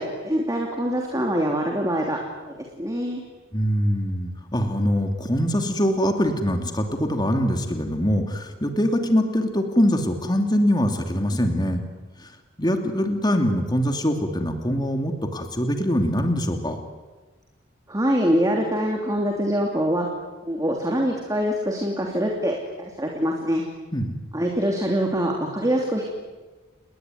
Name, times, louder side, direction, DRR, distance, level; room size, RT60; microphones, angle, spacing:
voice 1, 0.0-3.2 17.9-20.1 20.4-23.6 24.3-26.0, equal, 15° right, 0 dB, 3.0 m, -24 dB
voice 2, 3.5-11.8 12.2-12.3 12.6-16.8 23.9-24.1, equal, 20° left, 5 dB, 2.9 m, -23 dB
30.0 x 20.5 x 9.5 m, 1.3 s
head